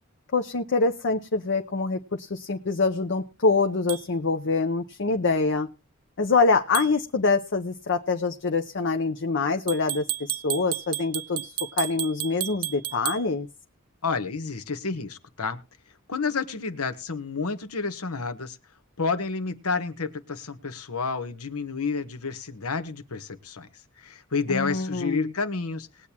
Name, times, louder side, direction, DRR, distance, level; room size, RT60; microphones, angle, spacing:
voice 1, 0.3-5.7 6.2-13.5 24.5-25.3, left 4 dB, 55° left, 5 dB, 0.8 m, -25 dB
sound 1, 3.9-4.0 6.7-6.9 9.7-13.2, right 16 dB, 85° right, 0.6 m, -32 dB
voice 2, 14.0-15.6 16.1-18.6 19.0-23.7 24.0-26.1, left 4 dB, 85° left, 10 dB, 1.2 m, -30 dB
20.5 x 8.4 x 2.9 m, 0.31 s
head